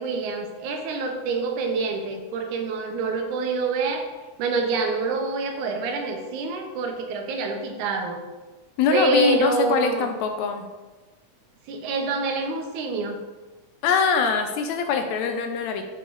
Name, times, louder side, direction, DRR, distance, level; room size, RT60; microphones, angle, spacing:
voice 1, 0.0-4.1 4.4-8.2 8.9-10.1 11.7-13.2, right 3 dB, 85° right, 4 dB, 2.3 m, -26 dB
voice 2, 8.8-10.7 13.8-15.8, left 5 dB, 80° left, 6 dB, 1.8 m, -23 dB
6.6 x 5.6 x 4.0 m, 1.2 s
omnidirectional pair, 3.5 m